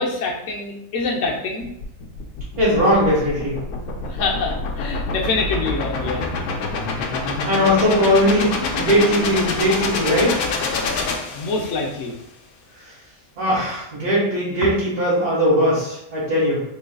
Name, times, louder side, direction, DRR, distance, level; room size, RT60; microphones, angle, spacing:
voice 1, 0.0-1.7 4.0-6.2 11.3-12.1, left 3 dB, 65° left, -1 dB, 1.1 m, -25 dB
sound 1, 1.6-11.9, left 3 dB, 85° left, 1.2 m, -26 dB
voice 2, 2.6-3.6 7.4-10.4 13.4-16.6, equal, 80° right, -10 dB, 2.0 m, -19 dB
3.9 x 3.8 x 2.3 m, 0.80 s
omnidirectional pair, 1.5 m